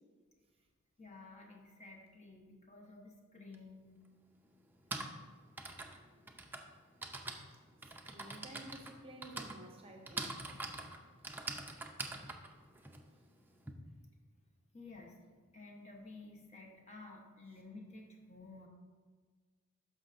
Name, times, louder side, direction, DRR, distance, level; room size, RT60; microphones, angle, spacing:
voice 1, 1.0-4.0 14.7-15.1 15.5-18.7, left 3 dB, 35° left, 0 dB, 1.0 m, -53 dB
Typing, 3.5-3.6 4.6-13.7, right 2 dB, 10° right, 0.5 m, -45 dB
voice 2, 7.8-10.4, right 1 dB, 30° right, 1 dB, 0.9 m, -52 dB
12.0 x 5.3 x 2.6 m, 1.5 s
head